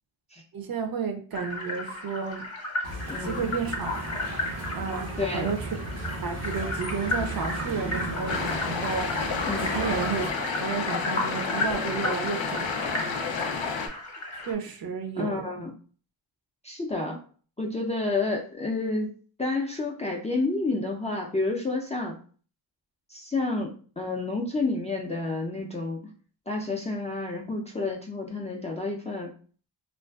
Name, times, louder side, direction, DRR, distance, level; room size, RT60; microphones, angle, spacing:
voice 1, 0.5-2.4 3.2-4.3 4.7-5.1 5.3-5.7 6.2-9.1 9.6-13.0 14.5-15.5, right 5 dB, 50° right, 5 dB, 0.5 m, -32 dB
sound 1, 1.3-14.5, left 2 dB, 35° left, 0.8 m, -34 dB
sound 2, 2.8-10.3, right 2 dB, 90° right, 0.8 m, -35 dB
voice 2, 3.1-3.5 5.2-5.5 9.4-9.8 15.2-15.7 16.6-17.2 17.6-19.1 19.4-22.2 23.1-26.1 26.5-29.3, left 3 dB, 15° left, -1 dB, 0.3 m, -30 dB
sound 3, 8.3-13.9, left 5 dB, 80° left, 0.5 m, -30 dB
2.5 x 2.3 x 2.2 m, 0.42 s
cardioid pair, 60°, 45 cm